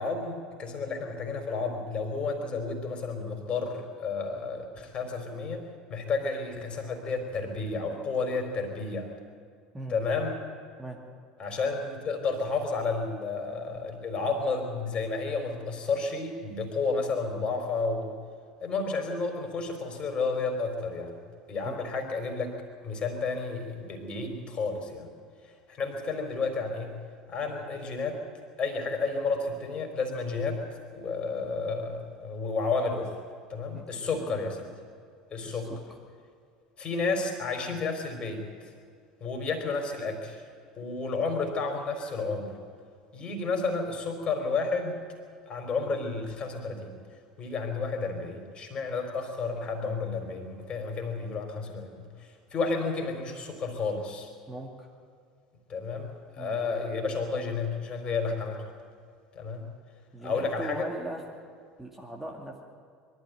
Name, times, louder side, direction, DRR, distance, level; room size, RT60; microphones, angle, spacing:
voice 1, 0.0-5.6 5.9-9.1 9.9-10.4 11.4-18.1 18.6-21.2 21.5-22.5 22.8-25.1 25.7-26.9 27.3-28.2 28.6-30.6 30.9-33.2 33.5-34.7 35.3-35.7 36.8-38.7 39.2-40.4 40.8-42.5 43.1-45.0 45.5-46.9 47.4-54.3 55.7-58.6 59.3-59.6 60.2-60.9, left 4 dB, 30° left, 4 dB, 3.9 m, -31 dB
voice 2, 34.1-34.4 35.4-35.8 54.5-54.9 56.4-56.6 60.1-61.2 61.8-62.6, right 1 dB, 5° right, 0 dB, 2.2 m, -40 dB
22.0 x 13.0 x 9.1 m, 2.2 s
figure-of-eight pair, 70°, 3 cm